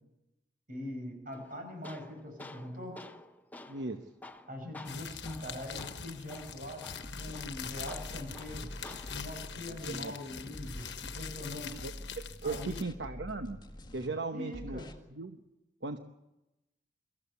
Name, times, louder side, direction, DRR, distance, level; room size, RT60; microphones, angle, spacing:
voice 1, 0.7-3.0 4.5-8.7 9.1-11.8 12.4-12.8 14.3-14.9, left 1 dB, 50° right, 4 dB, 6.0 m, -42 dB
Tools, 1.3-9.3, left 2 dB, 10° left, 0.8 m, -51 dB
voice 2, 3.7-4.1 9.8-10.1 11.8-13.6 13.9-14.8 15.1-15.4 15.8-16.0, right 3 dB, 75° right, 6 dB, 1.0 m, -37 dB
sound 1, 4.8-12.8, left 7 dB, 70° left, 1.3 m, -44 dB
sound 2, 7.0-10.1 10.5-14.1 14.5-15.0, left 1 dB, 25° left, 1.8 m, -46 dB
23.5 x 14.5 x 8.4 m, 0.96 s
head